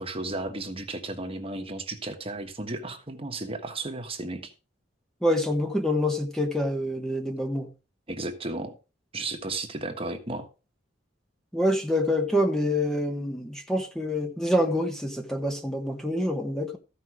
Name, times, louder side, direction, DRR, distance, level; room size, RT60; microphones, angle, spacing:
voice 1, 0.0-4.5 8.1-8.8 9.1-10.5, right 2 dB, 30° right, 1.4 m, -34 dB
voice 2, 5.2-7.7 11.5-16.8, left 1 dB, 5° left, 1.2 m, -26 dB
14.0 x 5.4 x 4.9 m
head